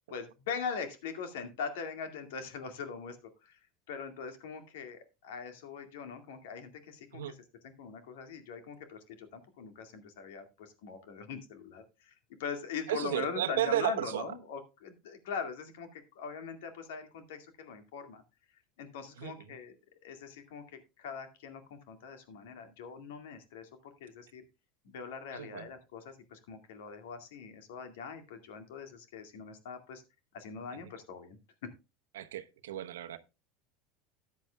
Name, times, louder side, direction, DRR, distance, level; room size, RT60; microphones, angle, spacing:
voice 1, 0.1-3.6 3.9-7.4 7.6-12.1 12.4-18.2 18.8-19.7 20.0-24.4 24.8-30.0 30.3-31.4, left 6 dB, 75° left, 2.1 m, -42 dB
voice 2, 12.9-14.2 19.2-19.3 25.3-25.7 32.1-33.2, right 13 dB, 80° right, 0.9 m, -33 dB
13.5 x 9.5 x 2.3 m
hypercardioid pair, 85°, 0 cm